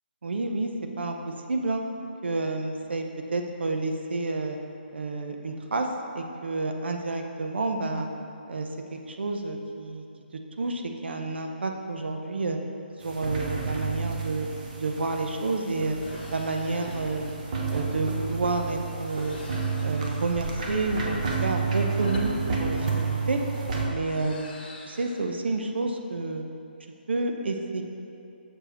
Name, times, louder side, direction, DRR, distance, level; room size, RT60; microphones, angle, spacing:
voice 1, 0.2-0.7 1.0-1.8 2.2-4.6 4.9-5.9 6.1-8.1 8.5-10.1 10.6-12.6 13.0-14.5 14.8-16.0 16.3-17.3 17.7-19.4 19.8-23.4 23.9-24.5 24.9-26.4 27.1-27.8, right 3 dB, 75° right, 4 dB, 0.7 m, -29 dB
sound 1, 13.0-23.9, right 4 dB, 45° right, 0.9 m, -31 dB
sound 2, 15.9-17.6 19.0-21.2 21.9-25.2, left 3 dB, 55° left, 1.0 m, -47 dB
6.7 x 5.0 x 4.4 m, 2.6 s
hypercardioid pair, 155°, 6 cm